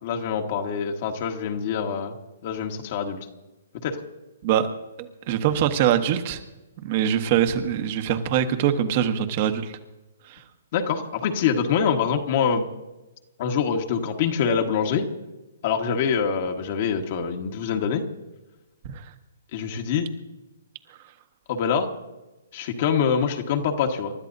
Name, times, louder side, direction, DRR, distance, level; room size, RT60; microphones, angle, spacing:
voice 1, 0.0-2.1 2.4-3.2 3.8-4.0 10.7-12.7 13.4-15.1 15.6-18.0 19.5-20.1 21.5-21.9 22.5-24.1, left 6 dB, 50° left, 3 dB, 1.6 m, -25 dB
voice 2, 5.3-6.4 6.8-9.7 18.8-18.9, right 9 dB, 45° right, 8 dB, 1.5 m, -23 dB
29.0 x 13.0 x 2.7 m, 1.1 s
hypercardioid pair, 130°, 0 cm